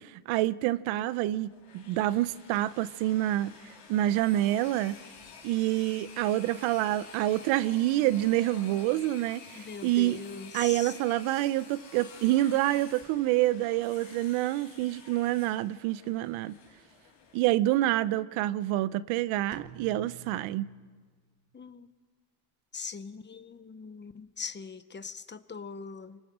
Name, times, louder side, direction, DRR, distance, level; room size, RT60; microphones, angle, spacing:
voice 1, 0.0-1.5 1.7-3.5 3.9-5.0 5.4-10.2 10.5-16.5 17.3-20.7, right 15 dB, 90° right, 0.8 m, -27 dB
sound 1, 1.4-17.4, left 5 dB, 70° left, 5.6 m, -51 dB
voice 2, 9.6-10.9 21.5-21.9 22.7-26.2, left 5 dB, 25° left, 0.9 m, -41 dB
sound 2, 19.5-21.5, right 7 dB, 60° right, 3.0 m, -50 dB
27.0 x 24.5 x 4.9 m
cardioid pair, 100°, 46 cm